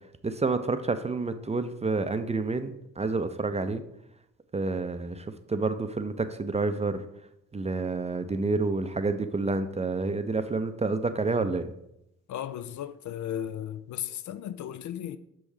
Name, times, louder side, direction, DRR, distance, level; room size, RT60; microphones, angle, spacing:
voice 1, 0.2-3.8 4.5-7.0 7.5-11.7, right 3 dB, 20° right, 0.5 m, -29 dB
voice 2, 12.3-15.2, left 10 dB, 55° left, 0.4 m, -35 dB
6.1 x 3.4 x 4.9 m
hypercardioid pair, 50°, 35 cm